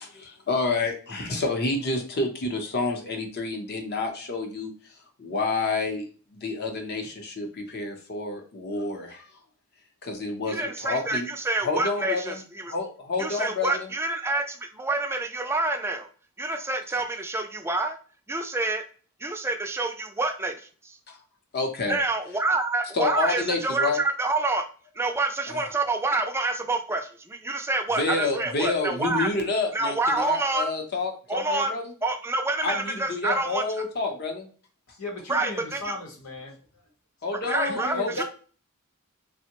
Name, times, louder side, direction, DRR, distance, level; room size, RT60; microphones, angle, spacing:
voice 1, 0.0-4.9 5.2-9.3 10.0-11.3 11.6-12.4 12.7-13.9 21.1-21.2 21.5-22.0 22.9-24.0 25.5-25.6 27.9-31.9 32.6-34.5 37.2-38.2, left 3 dB, 50° left, 3 dB, 0.7 m, -29 dB
voice 2, 10.5-12.7 13.2-16.1 16.4-18.0 18.3-18.8 19.2-21.0 21.9-24.7 25.0-29.3 29.7-30.7 31.3-31.7 32.0-33.6 35.3-35.9 37.5-38.2, right 2 dB, 10° right, 5 dB, 0.3 m, -27 dB
voice 3, 34.9-36.6 37.7-38.2, left 2 dB, 85° left, 1 dB, 0.9 m, -37 dB
3.4 x 2.1 x 2.8 m, 0.40 s
head